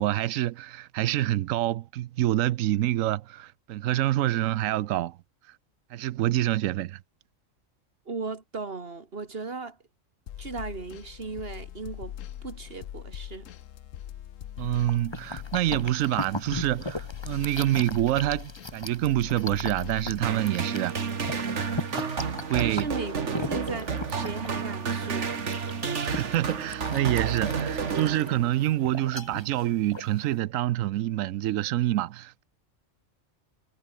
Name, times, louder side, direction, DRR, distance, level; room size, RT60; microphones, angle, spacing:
voice 1, 0.0-5.2 5.9-7.0 14.6-21.0 22.5-22.9 26.0-32.4, right 14 dB, 90° right, 1.0 m, -27 dB
voice 2, 8.1-9.8 10.4-12.2 12.4-13.5 22.6-23.1 23.4-25.5, right 3 dB, 50° right, 2.4 m, -37 dB
sound 1, 10.3-20.5, left 11 dB, 85° left, 1.2 m, -41 dB
sound 2, 14.6-30.4, left 2 dB, 20° left, 2.1 m, -38 dB
sound 3, 20.2-28.7, right 6 dB, 65° right, 1.9 m, -31 dB
omnidirectional pair, 1.3 m